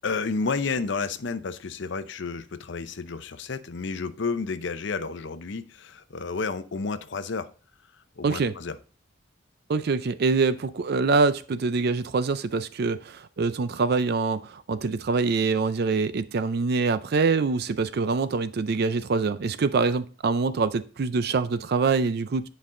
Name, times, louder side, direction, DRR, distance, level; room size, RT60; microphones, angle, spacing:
voice 1, 0.0-7.5 8.2-8.8, left 4 dB, 65° left, 0.6 m, -31 dB
voice 2, 8.2-8.5 9.7-22.5, right 4 dB, 55° right, 0.4 m, -25 dB
9.9 x 5.3 x 3.7 m
head